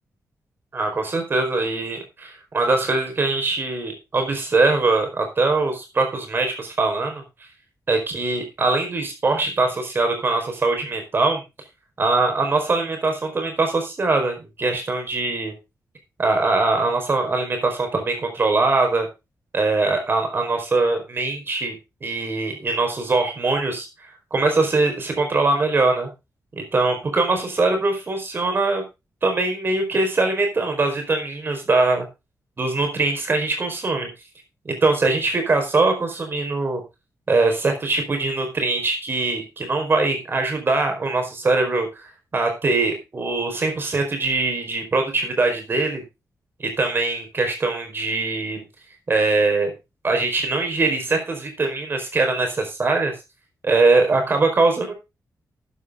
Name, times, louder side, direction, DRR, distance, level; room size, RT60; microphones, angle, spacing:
voice 1, 0.7-7.2 7.9-11.4 12.0-15.5 16.2-19.1 19.5-21.8 22.0-23.9 24.3-26.1 26.5-28.8 29.2-32.0 32.6-34.1 34.6-36.8 37.3-41.9 42.3-46.0 46.6-48.6 49.1-49.7 50.0-53.1 53.6-54.9, right 3 dB, 35° right, 5 dB, 4.7 m, -22 dB
13.5 x 9.3 x 3.7 m, 0.26 s
wide cardioid pair, 160°, 6 cm